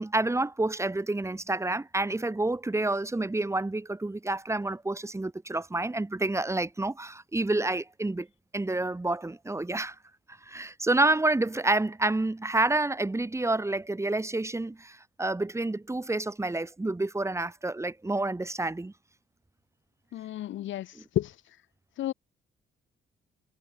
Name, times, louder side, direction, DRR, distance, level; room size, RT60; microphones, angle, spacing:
voice 1, 0.0-8.3 8.5-10.0 10.4-18.9 21.0-21.1, right 2 dB, 15° right, 2.1 m, -29 dB
voice 2, 20.1-21.3 22.0-22.1, left 13 dB, 75° left, 1.3 m, -32 dB
cardioid pair, 90°, 20 cm